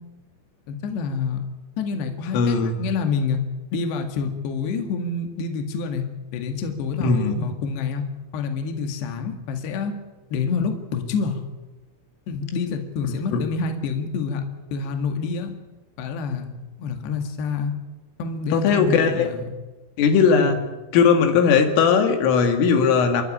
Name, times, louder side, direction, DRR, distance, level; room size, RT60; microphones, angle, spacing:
voice 1, 0.7-1.4 1.8-3.4 3.7-6.0 6.3-8.0 8.3-9.9 10.3-11.4 12.3-14.4 14.7-15.5 16.0-16.5 16.8-17.7 18.2-19.4 20.4-20.6, left 5 dB, 65° left, 5 dB, 3.8 m, -27 dB
voice 2, 2.3-2.8 7.0-7.3 13.3-13.4 18.5-19.3 20.0-20.6 20.9-23.2, left 6 dB, 90° left, 5 dB, 4.7 m, -18 dB
28.5 x 12.0 x 9.9 m, 1.1 s
omnidirectional pair, 5.6 m